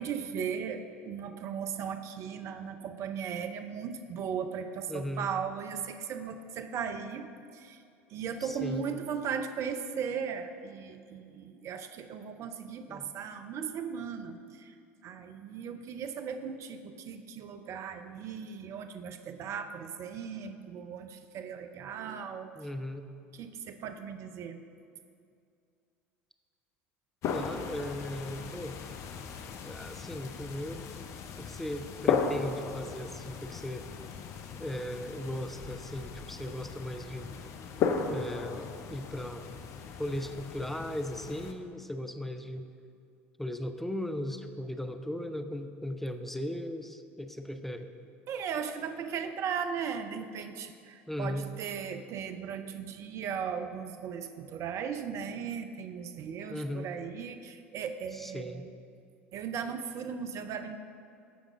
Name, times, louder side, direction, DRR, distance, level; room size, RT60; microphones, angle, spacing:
voice 1, 0.0-7.8 8.1-14.7 15.0-22.5 23.3-24.6 48.3-58.7 59.3-60.8, right 7 dB, 45° right, 9 dB, 0.6 m, -37 dB
voice 2, 4.9-5.3 8.4-8.9 12.9-13.1 22.6-23.0 27.3-28.8 29.6-31.1 31.4-33.8 34.6-37.3 38.1-39.5 40.0-42.7 43.4-47.9 51.1-51.5 56.5-56.9 58.1-58.7, left 1 dB, 5° left, 8 dB, 0.6 m, -37 dB
sound 1, 27.2-41.5, left 6 dB, 45° left, 0.7 m, -36 dB
14.0 x 5.0 x 3.7 m, 2.4 s
figure-of-eight pair, 70°, 7 cm